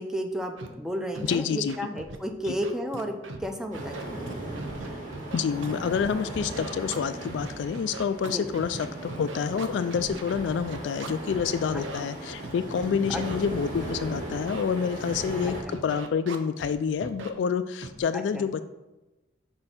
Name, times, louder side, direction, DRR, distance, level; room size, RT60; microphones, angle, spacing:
voice 1, 0.0-4.3 8.3-8.5 11.7-12.1 13.1-13.2 15.7-15.8 18.1-18.5, equal, 5° right, 4 dB, 0.5 m, -33 dB
Scratching (performance technique), 0.6-0.7 1.1-1.4 1.7-2.2 2.5-3.5 3.7-6.1 6.4-11.4 11.7-12.0 12.4-13.4 13.9-14.0 14.3-14.7 15.1-16.7 17.0-17.3 17.8-18.0, right 3 dB, 90° right, 0.7 m, -39 dB
voice 2, 1.3-1.8 5.3-15.6 15.8-18.6, left 6 dB, 70° left, 10 dB, 0.3 m, -28 dB
sound 1, 3.7-15.6, right 1 dB, 40° right, 1.8 m, -38 dB
6.6 x 4.4 x 5.7 m, 1.1 s
head